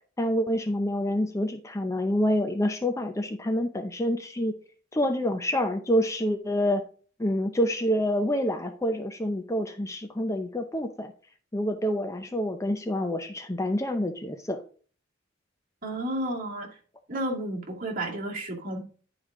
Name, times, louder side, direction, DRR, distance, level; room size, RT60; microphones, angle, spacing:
voice 1, 0.2-4.5 4.9-6.8 7.2-11.1 11.5-14.6, equal, 15° left, 0.6 m, -27 dB
voice 2, 15.8-16.8 17.1-18.8, right 1 dB, 45° right, 2.2 m, -32 dB
10.5 x 4.8 x 3.7 m
head